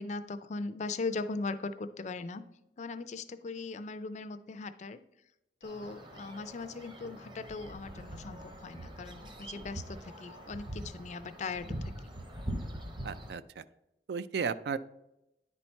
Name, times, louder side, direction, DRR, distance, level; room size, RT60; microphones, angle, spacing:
voice 1, 0.0-2.4 2.8-5.0 5.6-12.1, left 3 dB, 40° left, 12 dB, 0.4 m, -39 dB
sound 1, 5.6-13.3, right 1 dB, 30° right, 0.8 m, -43 dB
voice 2, 13.0-13.6 14.1-14.8, right 6 dB, 65° right, 14 dB, 0.4 m, -34 dB
9.9 x 4.3 x 4.4 m, 0.87 s
head